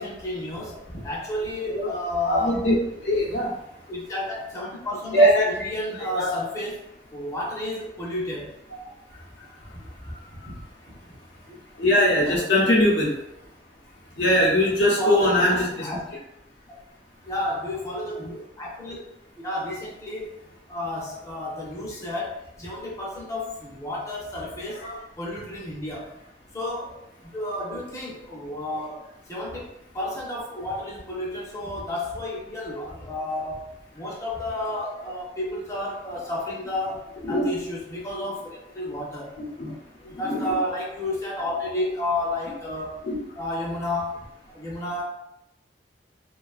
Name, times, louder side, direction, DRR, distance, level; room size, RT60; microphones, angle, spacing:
voice 1, 0.0-2.6 3.9-6.9 7.1-8.5 10.5-10.6 10.9-11.0 11.5-11.6 12.3-12.5 14.8-16.0 17.3-19.0 19.4-20.3 20.7-24.8 25.2-26.1 26.5-26.9 27.2-37.0 37.3-39.3 40.0-43.1 43.4-45.0, left 1 dB, 20° left, -4 dB, 0.5 m, -31 dB
voice 2, 2.2-2.8 3.0-3.5 5.1-5.5 5.9-6.3 11.8-13.1 14.2-15.9 24.8-25.0 37.2-37.5 39.6-39.7 40.2-40.6 43.0-43.2, equal, 85° left, -4 dB, 0.8 m, -21 dB
2.5 x 2.3 x 2.3 m, 0.84 s
head